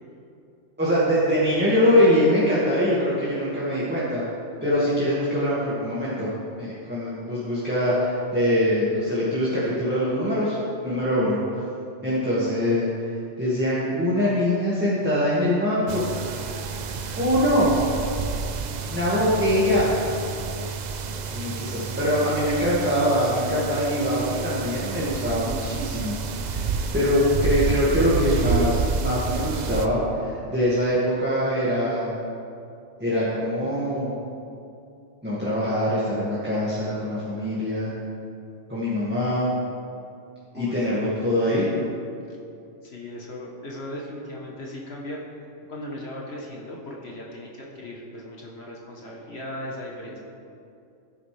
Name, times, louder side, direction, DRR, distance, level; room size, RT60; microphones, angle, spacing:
voice 1, 0.8-4.2 4.6-6.3 6.6-11.6 12.0-12.9 13.4-16.1 17.2-17.7 18.9-20.0 21.3-26.2 26.4-32.1 33.0-34.2 35.2-37.9 38.7-39.5 40.5-41.7, equal, 10° right, -9 dB, 2.1 m, -23 dB
sound 1, 15.9-29.9, right 5 dB, 50° right, 0.5 m, -29 dB
voice 2, 40.5-41.0 41.3-41.6 42.3-42.4 42.8-45.2 45.7-50.2, left 1 dB, 55° left, -3 dB, 1.7 m, -37 dB
16.0 x 9.7 x 3.5 m, 2.6 s
omnidirectional pair, 1.3 m